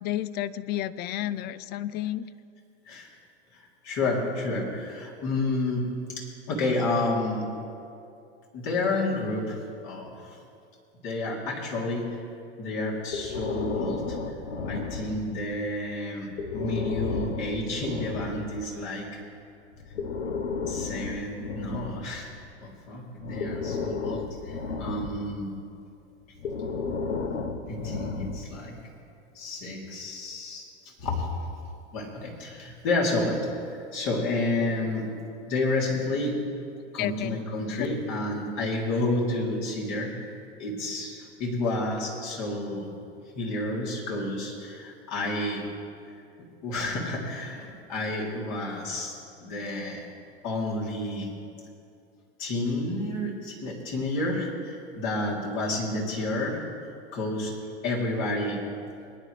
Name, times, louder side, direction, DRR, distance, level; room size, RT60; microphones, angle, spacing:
voice 1, 0.0-2.3 37.0-37.4 37.7-37.9, left 13 dB, 30° left, 18 dB, 0.4 m, -31 dB
voice 2, 3.5-7.6 8.5-10.4 11.0-12.2 12.6-14.3 14.6-19.1 20.7-22.3 22.6-25.6 27.7-28.8 29.3-31.3 31.9-35.2 35.5-36.4 36.9-40.2 40.6-42.9 43.3-45.7 46.6-50.0 50.4-51.3 52.4-56.6 57.1-57.6 57.8-58.7, left 2 dB, 50° left, -3 dB, 3.2 m, -30 dB
Breathing, 13.1-15.5 16.3-18.6 19.7-22.6 23.2-25.4 26.4-28.7, left 4 dB, 85° left, 1.1 m, -33 dB
21.5 x 10.0 x 3.3 m, 2.6 s
hypercardioid pair, 105°, 34 cm